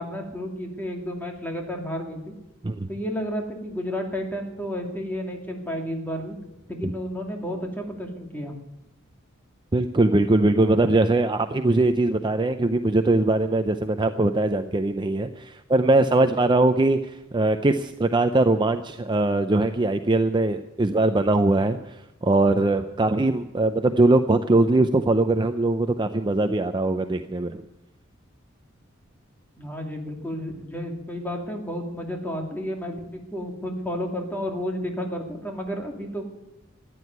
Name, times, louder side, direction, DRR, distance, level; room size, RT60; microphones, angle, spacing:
voice 1, 0.0-2.3 2.9-6.4 6.7-8.5 29.6-36.3, equal, 10° left, 1 dB, 2.5 m, -31 dB
voice 2, 9.7-27.6, right 2 dB, 25° right, 8 dB, 0.5 m, -21 dB
14.0 x 10.0 x 9.4 m, 0.93 s
head